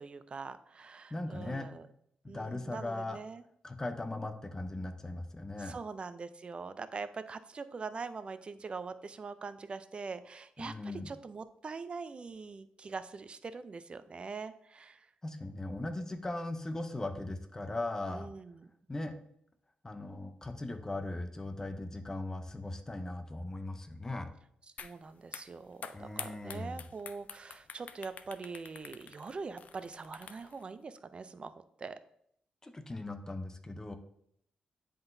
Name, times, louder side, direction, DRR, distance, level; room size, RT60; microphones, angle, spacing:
voice 1, 0.0-1.9 2.3-3.4 5.6-15.1 18.1-18.7 24.8-31.5 31.8-32.0, right 4 dB, 40° right, 12 dB, 0.4 m, -43 dB
voice 2, 1.1-1.7 2.2-3.2 3.6-5.8 10.6-11.1 15.2-18.3 18.9-19.1 19.8-24.3 25.9-26.8 32.6-34.0, left 2 dB, 20° left, 8 dB, 0.7 m, -39 dB
sound 1, 24.8-24.9 25.2-30.6, left 6 dB, 60° left, 0.4 m, -47 dB
10.0 x 3.8 x 2.7 m, 0.70 s
cardioid pair, 90°, 3 cm